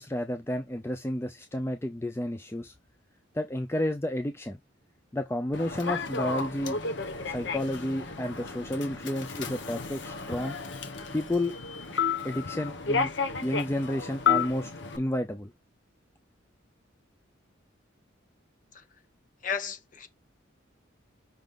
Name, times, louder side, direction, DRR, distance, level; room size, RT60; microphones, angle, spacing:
voice 1, 0.0-2.7 3.3-4.6 5.1-6.8 7.3-10.6 11.1-11.5 12.2-13.1 13.4-14.7 15.0-15.5, left 1 dB, 10° left, 0.5 m, -31 dB
Human voice / Subway metro underground, 5.5-15.0, left 5 dB, 60° left, 1.3 m, -32 dB
voice 2, 19.4-20.1, left 6 dB, 40° left, 1.2 m, -34 dB
6.0 x 3.9 x 5.1 m
head